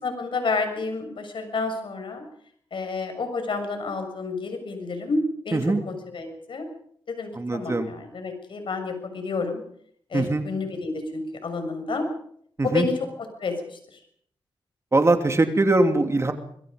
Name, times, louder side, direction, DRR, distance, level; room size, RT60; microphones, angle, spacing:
voice 1, 0.0-2.2 2.7-6.7 7.1-9.6 10.1-12.1 12.6-12.9 13.4-14.0, left 3 dB, 65° left, 6 dB, 6.8 m, -30 dB
voice 2, 5.5-5.8 7.4-7.9 10.1-10.5 12.6-12.9 14.9-16.3, right 2 dB, 30° right, 6 dB, 3.0 m, -21 dB
25.5 x 22.5 x 5.3 m, 0.65 s
cardioid pair, 80°, 9 cm